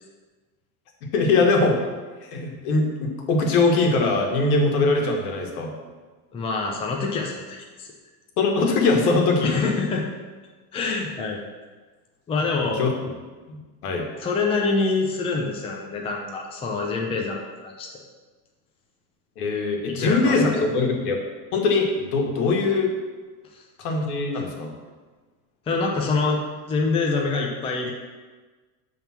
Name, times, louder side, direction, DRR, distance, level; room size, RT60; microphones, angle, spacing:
voice 1, 1.1-1.8 2.3-5.7 8.4-9.5 12.6-12.9 13.5-14.0 19.4-21.2 21.5-22.9 23.8-24.7, left 3 dB, 70° left, 1 dB, 1.7 m, -22 dB
voice 2, 6.3-7.9 9.4-10.1 10.7-11.4 12.3-12.8 14.2-17.9 19.9-20.4 23.5-23.6 25.7-26.4 26.7-27.9, left 3 dB, 15° left, 0 dB, 0.6 m, -25 dB
7.3 x 3.7 x 5.8 m, 1.3 s
supercardioid pair, 140°, 46 cm